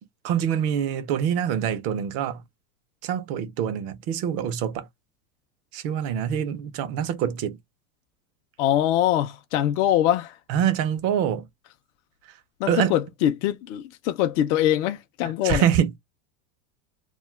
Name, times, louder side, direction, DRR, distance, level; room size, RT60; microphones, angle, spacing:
voice 1, 0.2-2.4 3.0-4.9 5.7-7.6 10.5-11.5 12.7-12.9 15.4-16.0, right 9 dB, 35° right, 0.5 m, -25 dB
voice 2, 8.6-10.4 12.6-15.6, left 12 dB, 60° left, 0.5 m, -23 dB
2.3 x 2.1 x 3.1 m
supercardioid pair, 130°, 41 cm